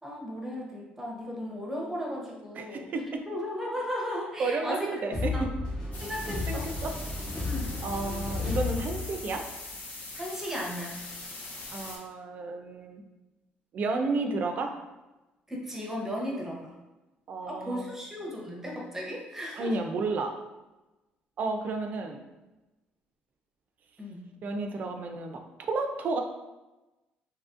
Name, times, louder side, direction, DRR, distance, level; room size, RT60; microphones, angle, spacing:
voice 1, 0.0-2.9 3.3-5.0 5.3-5.4 6.0-6.7 7.5-7.7 10.2-11.0 15.5-16.7 17.5-19.7 24.0-24.3, equal, 10° right, -2 dB, 0.7 m, -35 dB
voice 2, 2.6-3.2 4.4-5.5 6.5-7.0 7.8-9.4 11.7-13.0 13.7-14.7 17.3-17.9 19.5-20.3 21.4-22.2 24.4-26.2, right 3 dB, 50° right, 4 dB, 0.4 m, -32 dB
sound 1, 5.1-9.6, left 3 dB, 30° left, 0.9 m, -33 dB
sound 2, 5.9-12.0, left 2 dB, 50° left, 0.6 m, -42 dB
2.8 x 2.5 x 2.4 m, 1.1 s
cardioid pair, 110°, 4 cm